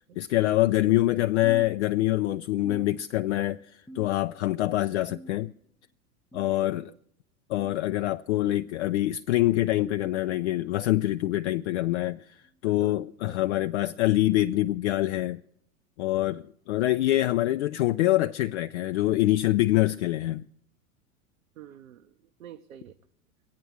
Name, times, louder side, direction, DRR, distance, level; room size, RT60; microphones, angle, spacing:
voice 1, 0.2-5.5 6.3-6.9 7.5-15.4 16.0-20.4, left 16 dB, 50° left, 0.5 m, -25 dB
sound 1, 1.4-2.3 2.6-3.4 3.9-4.5 5.1-5.7 6.3-6.7 7.5-7.8 8.7-9.0 10.0-10.2 11.2-11.4 12.4-12.6 13.6-13.8 14.8-14.9 16.1-16.2, right 1 dB, 5° left, 0.6 m, -47 dB
voice 2, 6.6-7.0 12.7-13.4 17.8-18.0 21.6-22.1 22.4-23.0, right 11 dB, 65° right, 0.9 m, -48 dB
23.5 x 8.9 x 4.7 m
figure-of-eight pair, 90°, 44 cm